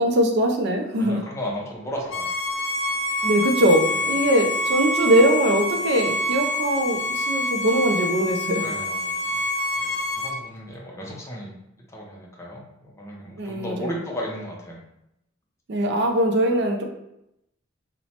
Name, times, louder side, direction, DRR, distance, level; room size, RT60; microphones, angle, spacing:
voice 1, 0.0-1.2 3.2-8.6 13.4-14.0 15.7-16.8, equal, 60° right, 3 dB, 0.4 m, -21 dB
voice 2, 1.0-2.3 3.9-4.1 8.6-9.5 9.7-11.5 11.9-14.8, equal, 15° left, -3 dB, 0.6 m, -35 dB
Bowed string instrument, 2.1-10.3, left 1 dB, 80° left, 0.5 m, -26 dB
2.9 x 2.1 x 2.8 m, 0.83 s
head